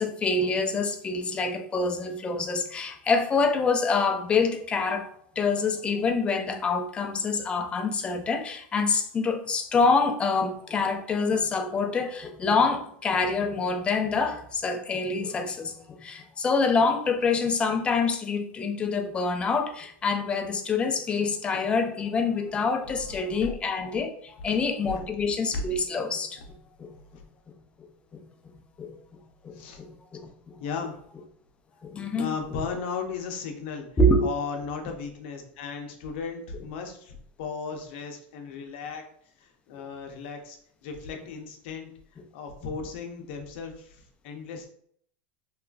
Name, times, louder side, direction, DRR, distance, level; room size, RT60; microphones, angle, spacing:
voice 1, 0.0-5.1 5.4-26.4 26.8-26.9 28.1-28.2 28.8-28.9 29.4-30.3 31.8-32.3 34.0-34.3, left 4 dB, 15° left, 5 dB, 0.3 m, -26 dB
voice 2, 30.6-31.0 32.2-33.9 34.2-39.0 39.4-44.7, left 5 dB, 65° left, 4 dB, 0.6 m, -36 dB
2.9 x 2.4 x 2.3 m, 0.63 s
supercardioid pair, 140°, 6 cm